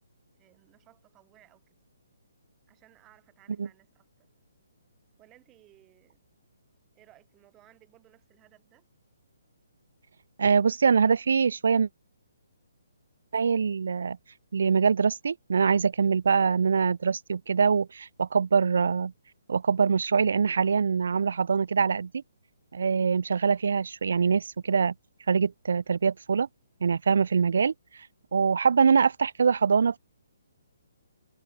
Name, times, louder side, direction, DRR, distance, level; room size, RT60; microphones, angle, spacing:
voice 1, 0.4-1.8 2.7-4.3 5.2-6.2 6.9-8.9, right 15 dB, 10° right, 2.7 m, -60 dB
voice 2, 10.4-11.9 13.3-14.2 14.5-19.1 19.5-22.2 22.7-24.9 25.3-26.5 26.8-27.7 28.3-30.0, right 6 dB, 60° right, 0.3 m, -24 dB
hypercardioid pair, 175°, 0 cm